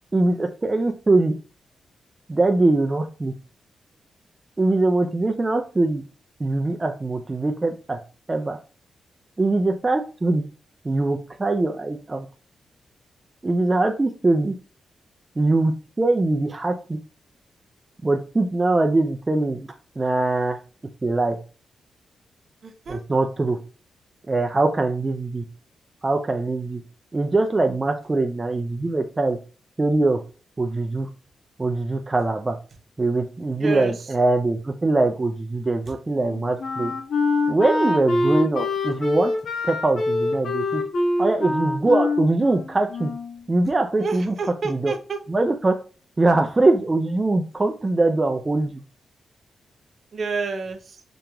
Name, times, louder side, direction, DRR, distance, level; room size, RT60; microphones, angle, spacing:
voice 1, 0.1-1.3 2.3-3.3 4.6-6.0 6.4-8.0 8.3-8.6 9.4-10.4 10.8-12.3 13.4-14.5 15.4-17.0 18.0-20.6 21.0-21.4 22.9-23.6 24.3-25.4 26.0-26.8 27.1-29.4 29.8-30.2 30.6-31.1 31.6-32.6 33.0-36.9 37.5-39.3 39.6-40.8 41.2-43.1 43.5-44.3 44.7-44.9 45.3-45.8 46.2-48.8, right 2 dB, 25° right, 3 dB, 0.4 m, -22 dB
voice 2, 22.6-23.0 33.6-34.1 44.0-45.2 50.1-51.0, right 4 dB, 55° right, 6 dB, 0.7 m, -29 dB
Wind instrument woodwind instrument, 36.2-43.4, left 2 dB, 70° left, 1.2 m, -25 dB
5.1 x 2.9 x 2.3 m, 0.37 s
cardioid pair, 110°, 0 cm